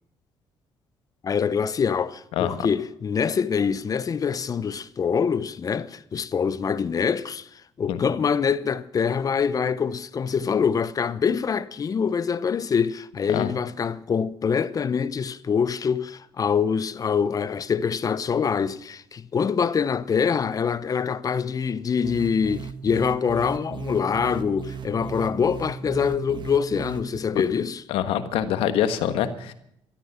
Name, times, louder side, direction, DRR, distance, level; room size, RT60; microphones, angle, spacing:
voice 1, 1.2-7.5 7.8-27.8, left 6 dB, 40° left, 0.9 m, -25 dB
voice 2, 2.4-2.7 7.9-8.1 13.3-13.5 27.9-29.5, left 10 dB, 85° left, 1.4 m, -25 dB
sound 1, 22.0-27.2, right 7 dB, 55° right, 1.4 m, -36 dB
13.5 x 13.0 x 7.2 m
cardioid pair, 85°, 9 cm